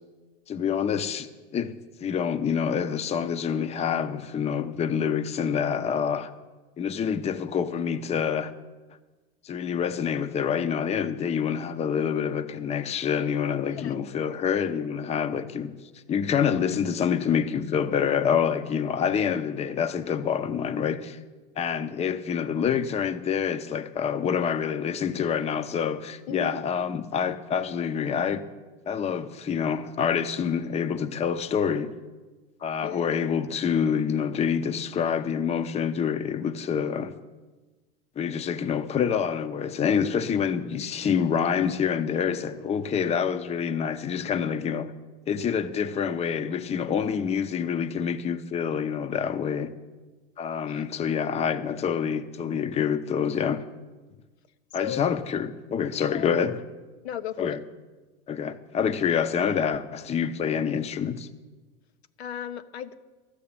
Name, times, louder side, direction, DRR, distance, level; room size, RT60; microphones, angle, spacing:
voice 1, 0.5-1.3 1.5-1.7 2.0-6.3 6.8-8.5 9.4-15.7 16.1-21.2 21.6-28.4 28.9-31.9 32.6-37.1 38.2-44.9 45.3-49.7 50.4-53.6 54.7-56.6 57.4-57.6 58.3-61.3, left 7 dB, 20° left, 0.6 m, -27 dB
voice 2, 26.3-26.6 32.8-33.1 42.9-43.2 50.6-50.8 54.7-55.0 55.9-56.3 57.0-57.6 62.2-63.0, left 9 dB, 85° left, 0.8 m, -36 dB
13.0 x 6.5 x 8.6 m
hypercardioid pair, 105°, 32 cm